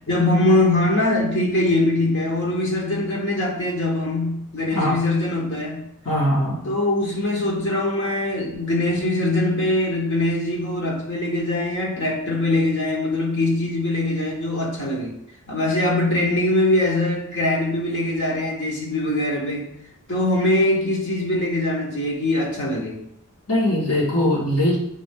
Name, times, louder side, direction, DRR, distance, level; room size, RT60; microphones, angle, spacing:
voice 1, 0.1-5.8 6.6-15.1 15.5-19.7 20.1-23.0, left 1 dB, 55° left, -3 dB, 1.5 m, -22 dB
voice 2, 6.1-6.6 23.5-24.8, left 1 dB, 75° left, -6 dB, 2.0 m, -20 dB
8.4 x 3.4 x 3.8 m, 0.76 s
head